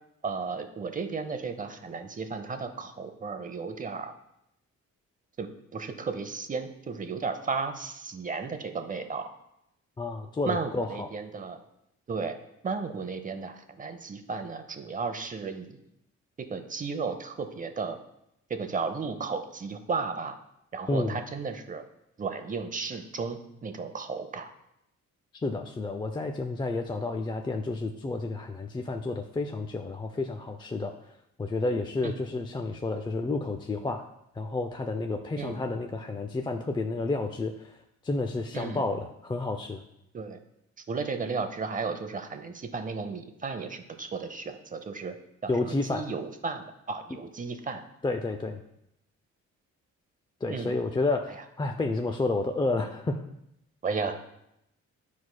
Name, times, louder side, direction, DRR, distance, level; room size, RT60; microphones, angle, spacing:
voice 1, 0.2-4.1 5.4-9.3 10.5-11.6 12.1-12.4 12.6-15.8 16.4-18.0 18.5-20.4 20.7-21.8 22.2-24.5 32.0-32.2 35.4-35.6 38.5-38.8 40.1-40.4 40.9-45.2 45.4-47.8 50.5-50.7 53.8-54.2, right 4 dB, 25° right, 8 dB, 0.6 m, -34 dB
voice 2, 10.0-11.1 20.9-21.2 25.3-34.0 34.3-39.8 45.5-46.0 48.0-48.6 50.4-53.2, left 3 dB, 15° left, 4 dB, 0.4 m, -30 dB
9.4 x 4.7 x 2.2 m, 0.80 s
cardioid pair, 90°, 30 cm